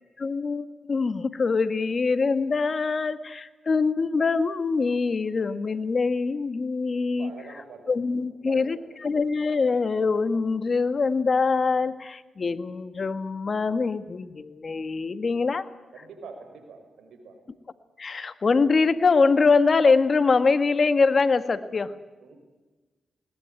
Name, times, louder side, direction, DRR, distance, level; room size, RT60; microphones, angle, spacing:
voice 1, 0.2-7.3 7.9-15.7 18.0-21.9, left 4 dB, 50° left, 11 dB, 1.7 m, -24 dB
voice 2, 7.0-7.9 8.4-8.8 15.9-17.4 22.2-22.4, right 5 dB, 85° right, 6 dB, 5.7 m, -44 dB
21.0 x 19.0 x 9.3 m, 1.2 s
cardioid pair, 55°, 0 cm